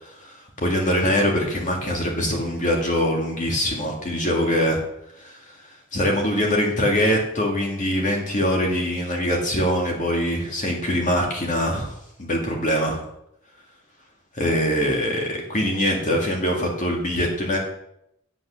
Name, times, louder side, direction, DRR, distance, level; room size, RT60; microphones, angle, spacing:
voice 1, 0.1-4.8 5.2-5.4 5.9-13.0 14.4-17.6, equal, 40° left, 0 dB, 2.0 m, -23 dB
8.6 x 7.3 x 6.8 m, 0.77 s
head